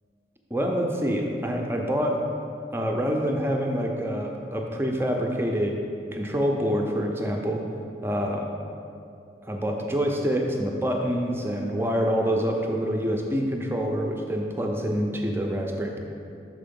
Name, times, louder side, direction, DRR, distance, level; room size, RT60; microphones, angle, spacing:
voice 1, 0.5-2.3 2.7-5.8 6.1-7.7 8.0-8.5 9.4-16.0, equal, 15° right, 1 dB, 0.5 m, -26 dB
6.0 x 4.7 x 5.2 m, 2.6 s
head